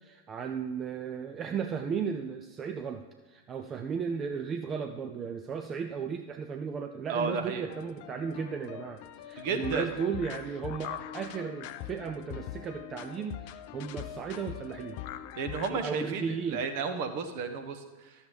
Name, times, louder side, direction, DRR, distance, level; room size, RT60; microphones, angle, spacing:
voice 1, 0.0-15.0 15.7-16.6, right 6 dB, 25° right, 6 dB, 0.6 m, -35 dB
voice 2, 7.1-7.6 9.4-9.9 15.3-18.1, right 5 dB, 45° right, 7 dB, 1.2 m, -33 dB
sound 1, 7.7-15.7, left 12 dB, 45° left, 0.5 m, -42 dB
12.5 x 7.2 x 4.8 m, 1.2 s
figure-of-eight pair, 90°, 0 cm